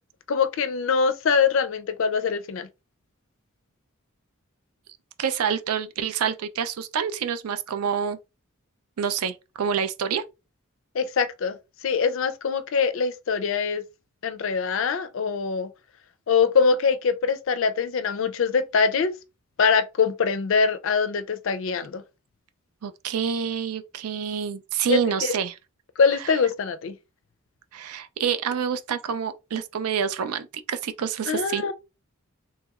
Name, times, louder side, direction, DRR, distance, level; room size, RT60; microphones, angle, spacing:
voice 1, 0.3-2.7 10.9-11.6 11.8-13.8 14.2-15.7 16.3-19.1 19.6-22.0 24.9-25.4 26.0-27.0 31.3-31.7, left 5 dB, 65° left, 0.4 m, -23 dB
voice 2, 5.2-8.2 9.0-10.2 22.8-25.5 27.7-31.6, right 7 dB, 85° right, 0.4 m, -27 dB
3.0 x 2.8 x 2.3 m
head